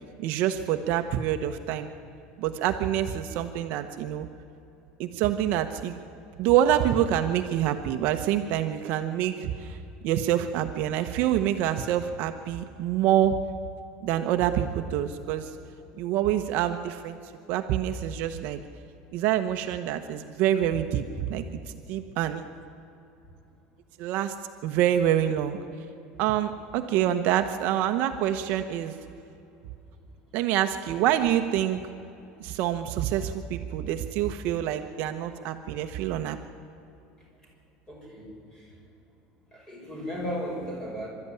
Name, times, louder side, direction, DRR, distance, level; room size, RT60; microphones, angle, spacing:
voice 1, 0.2-1.9 2.4-4.3 5.0-6.0 6.4-9.8 10.0-13.4 14.0-15.5 16.0-17.2 17.5-18.6 19.1-21.0 21.3-22.4 24.0-24.3 24.6-25.6 26.2-28.9 30.3-31.8 32.4-36.4, right 11 dB, 55° right, 7 dB, 1.0 m, -26 dB
voice 2, 37.9-38.8 39.5-41.1, equal, 15° left, -2 dB, 6.4 m, -36 dB
26.5 x 13.0 x 9.9 m, 2.8 s
cardioid pair, 175°, 4 cm